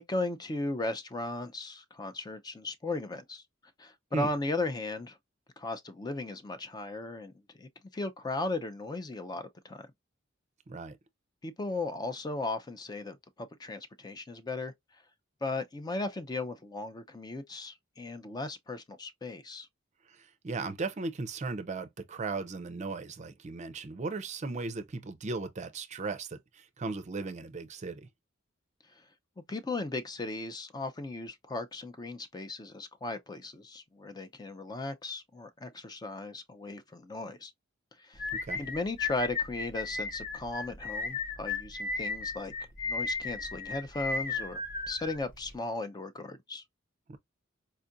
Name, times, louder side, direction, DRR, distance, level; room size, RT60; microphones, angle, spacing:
voice 1, 0.0-3.4 3.8-5.2 5.6-7.3 7.6-9.9 11.4-14.7 15.4-19.7 29.5-37.5 38.0-38.2 38.6-42.5 42.9-46.6, left 2 dB, 20° left, 0.4 m, -36 dB
voice 2, 10.7-11.0 20.4-28.1 38.5-38.6 47.1-47.2, right 3 dB, 35° right, 0.5 m, -36 dB
sound 1, 38.2-45.5, left 4 dB, 45° left, 0.8 m, -35 dB
4.4 x 2.4 x 2.5 m
head